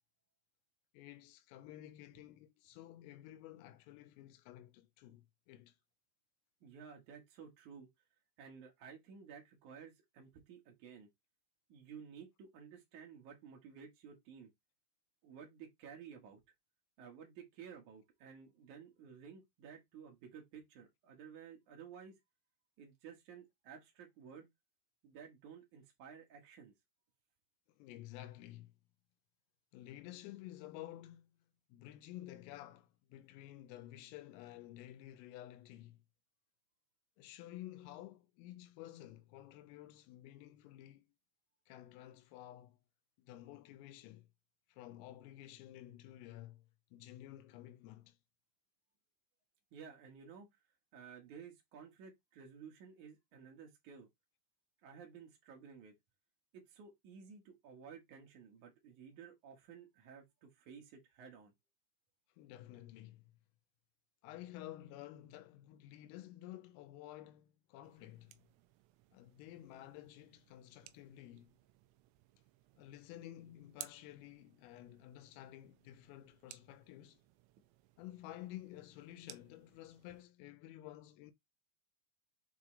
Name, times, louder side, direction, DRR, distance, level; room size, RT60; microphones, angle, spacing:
voice 1, 0.9-5.8 27.7-28.7 29.7-31.3 31.7-36.0 37.2-41.1 41.7-42.8 43.2-44.3 44.7-48.2 62.4-63.2 64.2-68.4 69.1-71.6 72.8-77.2 78.0-81.3, left 14 dB, 85° left, 3.4 m, -52 dB
voice 2, 6.6-7.9 8.4-11.1 11.7-14.5 15.2-16.4 17.0-22.2 22.8-24.5 25.0-26.7 49.7-50.6 50.9-54.1 54.8-56.0 56.5-61.5, right 7 dB, 70° right, 1.9 m, -54 dB
sound 1, 67.8-80.2, right 15 dB, 90° right, 3.4 m, -59 dB
8.0 x 3.8 x 3.2 m
omnidirectional pair, 5.9 m